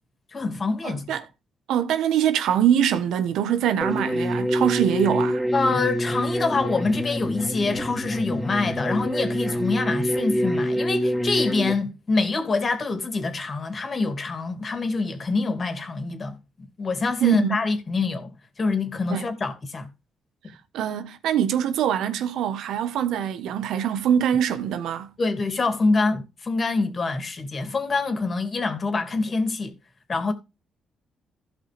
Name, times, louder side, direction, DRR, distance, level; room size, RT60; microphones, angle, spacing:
voice 1, 0.3-1.1 5.5-16.4 16.8-19.9 25.2-29.7 30.1-30.3, left 3 dB, 35° left, 2.5 m, -25 dB
voice 2, 0.8-1.3 1.7-5.4 17.2-17.6 19.1-19.3 20.7-25.1, right 9 dB, 85° right, 1.2 m, -23 dB
sound 1, 3.8-11.7, equal, 5° left, 2.6 m, -26 dB
16.0 x 5.4 x 3.4 m
cardioid pair, 100°, 0 cm